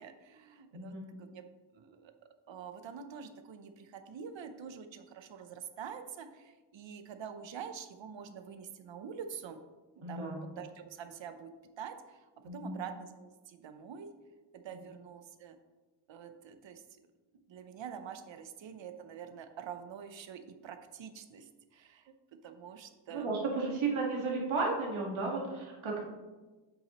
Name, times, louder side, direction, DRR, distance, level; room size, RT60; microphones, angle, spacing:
voice 1, 0.0-1.4 1.7-2.1 2.5-9.6 10.1-11.5 11.8-12.3 12.5-14.1 14.5-15.6 16.1-16.8 17.5-22.1 22.4-23.3, right 7 dB, 70° right, 8 dB, 0.7 m, -46 dB
voice 2, 0.7-1.1 10.0-10.4 12.4-12.8 14.7-14.8 23.1-26.0, right 3 dB, 85° right, -1 dB, 1.7 m, -34 dB
8.4 x 5.7 x 3.0 m, 1.2 s
wide cardioid pair, 155°, 47 cm